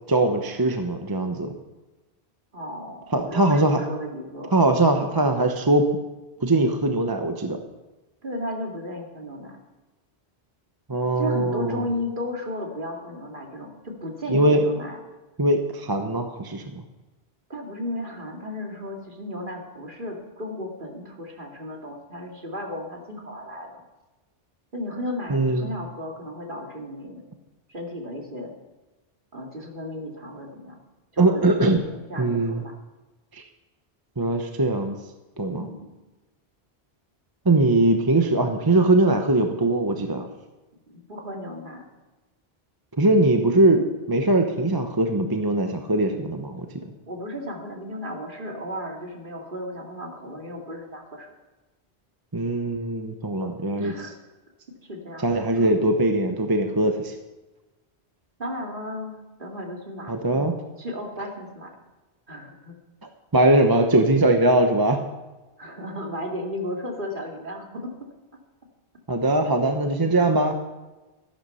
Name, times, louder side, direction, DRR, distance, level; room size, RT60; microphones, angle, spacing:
voice 1, 0.1-1.5 3.1-3.8 4.5-5.8 6.4-7.6 10.9-11.8 14.3-14.6 15.4-16.6 25.3-25.7 31.2-31.8 32.2-32.6 34.2-35.0 35.4-35.7 37.5-40.3 43.0-46.6 52.3-53.9 55.2-57.1 60.1-60.6 63.3-65.0 69.1-70.5, right 2 dB, 25° right, 5 dB, 0.9 m, -21 dB
voice 2, 2.5-4.5 8.2-9.6 11.2-15.0 17.5-23.7 24.7-27.2 27.7-28.5 29.3-30.8 31.1-32.7 35.5-35.9 40.9-41.8 47.0-51.3 53.8-54.1 54.9-55.7 58.4-60.2 60.8-61.7 62.3-62.7 65.6-67.9 69.4-69.5, left 1 dB, 55° right, 0 dB, 2.6 m, -34 dB
14.0 x 11.5 x 5.6 m, 1.1 s
omnidirectional pair, 1.1 m